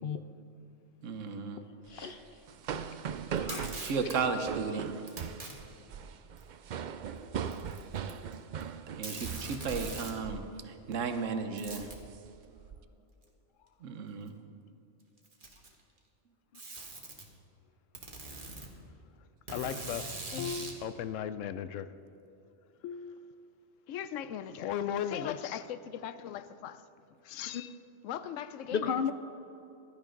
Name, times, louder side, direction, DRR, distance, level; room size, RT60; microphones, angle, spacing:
voice 1, 1.0-1.6 3.8-4.9 9.0-11.9 13.8-14.3, right 5 dB, 80° right, 1.2 m, -34 dB
voice 2, 1.6-2.4 3.3-3.8 27.5-27.6 28.7-29.1, left 7 dB, 60° left, 0.6 m, -34 dB
sound 1, 1.9-10.0 10.2-10.5 10.9-11.2 11.7-12.8, right 7 dB, 65° right, 0.4 m, -40 dB
Packing tape duct tape, 3.4-4.2 5.1-5.5 6.4-6.5 7.5-8.3 8.6-8.7 9.0-10.2 11.6-12.0 13.2-13.3 14.3-14.4 15.2-15.8 16.5-17.3 17.9-18.7 19.5-20.8, right 2 dB, 45° right, 1.6 m, -42 dB
voice 3, 19.2-21.9 22.8-23.5 23.9-26.8 27.2-27.8 28.0-29.1, left 9 dB, 85° left, 0.9 m, -38 dB
16.0 x 12.0 x 3.8 m
omnidirectional pair, 1.3 m